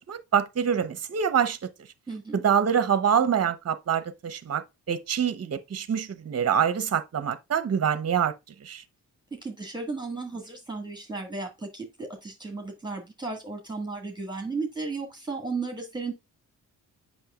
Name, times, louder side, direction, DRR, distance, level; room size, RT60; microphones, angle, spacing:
voice 1, 0.1-1.6 2.3-8.3 8.6-8.8, right 8 dB, 40° right, 0.9 m, -25 dB
voice 2, 2.1-2.4 9.3-16.1, right 3 dB, 10° right, 1.7 m, -34 dB
7.5 x 5.7 x 2.4 m
supercardioid pair, 55°, 39 cm